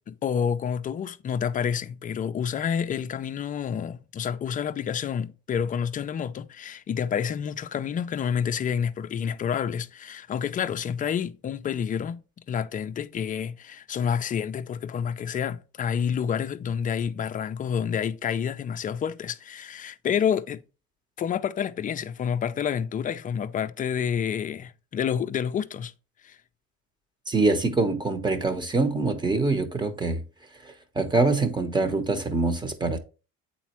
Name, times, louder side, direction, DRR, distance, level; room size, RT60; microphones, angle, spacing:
voice 1, 0.1-12.2 12.5-20.6 21.2-25.9 26.2-26.4, left 8 dB, 30° left, 0.4 m, -29 dB
voice 2, 27.3-30.2 30.6-33.0, right 3 dB, 15° right, 1.0 m, -24 dB
8.4 x 4.2 x 3.0 m
cardioid pair, 125°, 29 cm